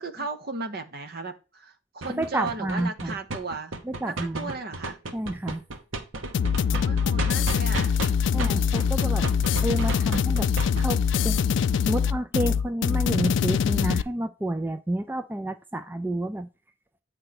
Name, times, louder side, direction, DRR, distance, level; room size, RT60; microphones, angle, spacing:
voice 1, 0.0-3.7 4.1-5.0 6.7-8.0 8.3-8.9, right 3 dB, 55° right, 8 dB, 1.0 m, -36 dB
sound 1, 2.0-8.1 8.4-10.8, right 2 dB, 90° right, 1.1 m, -33 dB
voice 2, 2.2-3.1 4.0-4.5 5.1-5.6 8.3-9.3 9.6-10.5 10.8-11.4 11.9-16.5, right 1 dB, 10° right, 8 dB, 0.4 m, -29 dB
sound 2, 6.3-14.0, left 7 dB, 65° left, 0.3 m, -23 dB
8.9 x 3.3 x 5.8 m, 0.31 s
head